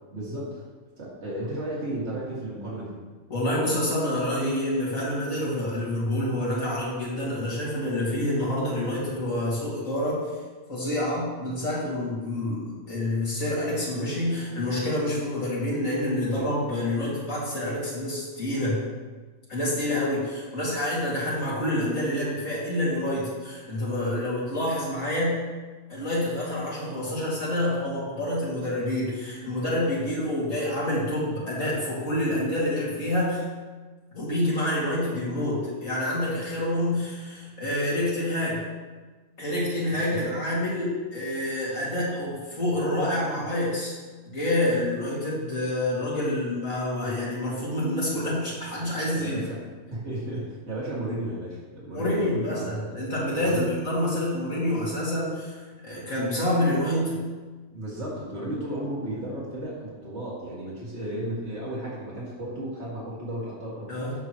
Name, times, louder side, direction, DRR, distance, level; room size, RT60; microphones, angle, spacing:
voice 1, 0.1-0.6 1.0-3.0 39.9-40.2 49.1-49.6 49.9-52.7 53.3-53.7 57.7-63.9, right 1 dB, 60° right, -6 dB, 2.7 m, -34 dB
voice 2, 3.3-10.2 10.7-18.8 19.5-25.4 25.9-33.4 34.1-38.6 39.4-43.9 44.3-49.4 51.9-57.2 63.9-64.1, left 1 dB, 90° left, -8 dB, 3.0 m, -27 dB
15.0 x 6.2 x 3.1 m, 1.3 s
omnidirectional pair, 1.3 m